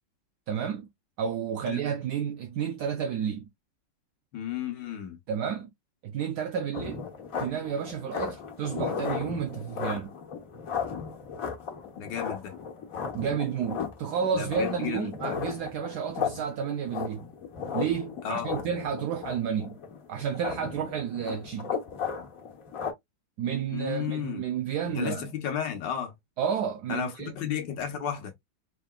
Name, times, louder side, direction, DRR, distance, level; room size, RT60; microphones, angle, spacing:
voice 1, 0.5-0.9 1.2-3.5 5.3-5.7 6.0-7.1 7.4-10.1 13.1-17.2 17.7-19.8 20.1-21.8 23.4-25.2 26.4-27.4, right 7 dB, 70° right, 1.0 m, -31 dB
voice 2, 4.3-5.2 12.0-12.5 14.3-15.1 18.2-18.5 23.7-24.4 24.9-26.1 26.9-28.3, left 9 dB, 65° left, 1.6 m, -33 dB
sound 1, 6.7-22.9, left 6 dB, 50° left, 1.4 m, -36 dB
4.7 x 3.4 x 2.2 m
omnidirectional pair, 2.1 m